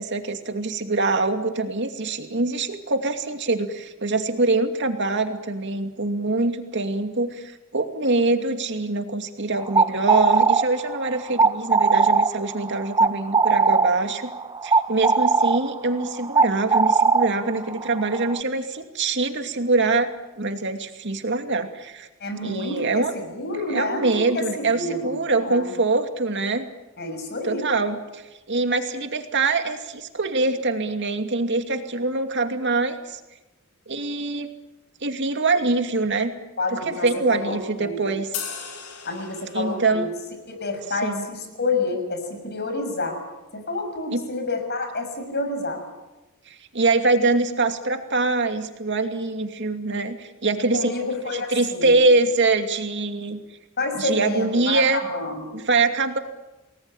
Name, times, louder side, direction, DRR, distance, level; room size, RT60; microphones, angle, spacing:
voice 1, 0.0-14.3 14.6-20.1 20.4-22.1 22.4-23.1 23.7-26.7 27.4-28.2 28.5-33.2 33.9-34.5 35.0-36.3 36.7-38.3 39.5-40.1 41.0-41.2 44.1-44.3 46.5-50.9 51.3-53.4 53.9-55.0 55.5-56.2, right 3 dB, 55° right, 6 dB, 2.6 m, -24 dB
sound 1, 9.6-18.4, right 4 dB, 20° right, 0.8 m, -20 dB
voice 2, 22.2-25.1 25.4-25.7 27.0-27.7 36.6-38.0 39.0-40.1 40.5-43.2 43.5-45.8 50.7-52.0 53.8-55.6, left 2 dB, 50° left, 6 dB, 6.4 m, -29 dB
sound 2, 38.3-40.0, left 7 dB, 80° left, 5.7 m, -35 dB
29.0 x 20.0 x 8.8 m, 1.1 s
head